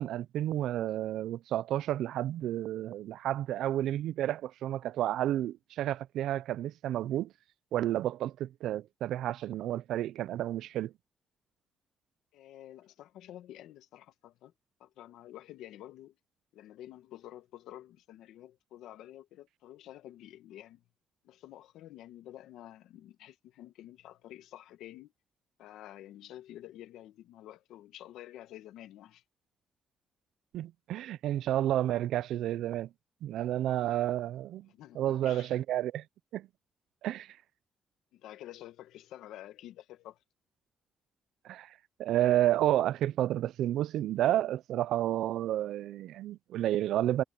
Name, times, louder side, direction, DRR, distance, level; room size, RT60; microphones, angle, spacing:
voice 1, 0.0-7.3 7.7-10.9 30.5-32.9 33.2-34.7 35.0-36.0 36.3-36.5 37.0-37.4 41.4-41.7 42.0-47.2, right 13 dB, 80° right, 0.4 m, -31 dB
voice 2, 12.3-14.5 14.8-16.2 16.5-20.8 21.2-25.1 25.6-29.2 34.7-35.5 38.1-40.2, left 13 dB, 85° left, 1.5 m, -49 dB
cardioid pair, 90°, 0 cm